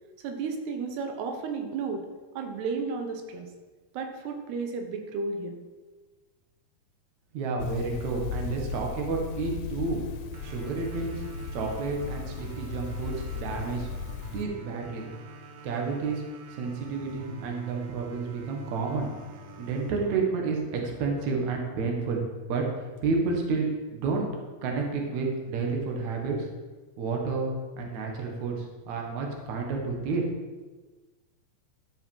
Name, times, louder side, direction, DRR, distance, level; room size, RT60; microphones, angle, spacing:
voice 1, 0.2-2.0 2.3-3.5 3.9-5.6, right 4 dB, 90° right, 4 dB, 3.2 m, -33 dB
voice 2, 7.3-10.0 10.4-11.2 11.5-13.9 14.3-15.1 15.6-16.2 16.5-19.1 19.6-24.3 24.6-26.5 27.0-30.2, right 4 dB, 55° right, 1 dB, 2.6 m, -30 dB
sound 1, 7.6-14.4, left 6 dB, 90° left, 2.8 m, -37 dB
sound 2, 10.3-21.3, right 5 dB, 70° right, 2.5 m, -46 dB
13.0 x 6.1 x 5.6 m, 1.3 s
omnidirectional pair, 4.5 m